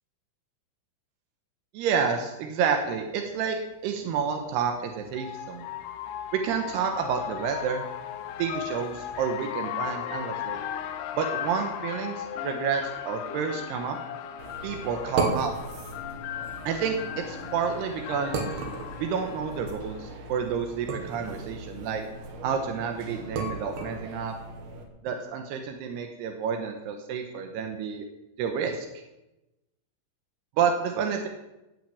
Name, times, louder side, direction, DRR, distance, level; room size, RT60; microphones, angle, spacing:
voice 1, 1.7-3.6 3.8-5.7 6.3-7.8 8.4-10.6 11.2-14.0 14.6-15.5 16.7-18.4 19.0-22.0 22.4-24.3 25.0-28.1 28.4-28.9 30.6-31.3, right 6 dB, 90° right, 4 dB, 3.2 m, -29 dB
sound 1, 3.0-3.1 4.5-20.1, left 10 dB, 80° left, 2.9 m, -37 dB
sound 2, 14.4-24.8, right 3 dB, 70° right, 3.8 m, -36 dB
16.5 x 6.3 x 8.8 m, 0.97 s
omnidirectional pair, 4.7 m